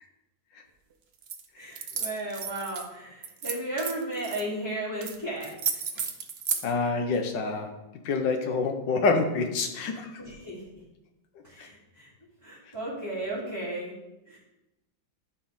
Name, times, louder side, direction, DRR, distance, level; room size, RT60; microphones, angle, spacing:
sound 1, 1.2-1.4 1.7-2.9 3.2-4.4 5.0-5.2 5.4-6.6, right 6 dB, 55° right, 0.7 m, -32 dB
voice 1, 1.5-5.5 10.2-10.6 11.4-12.1 12.4-13.9 14.3-14.4, right 1 dB, 10° left, -14 dB, 3.6 m, -34 dB
voice 2, 6.6-7.7 8.0-10.2 11.6-11.7, left 4 dB, 80° left, 6 dB, 1.7 m, -27 dB
13.0 x 5.3 x 3.7 m, 0.94 s
omnidirectional pair, 2.0 m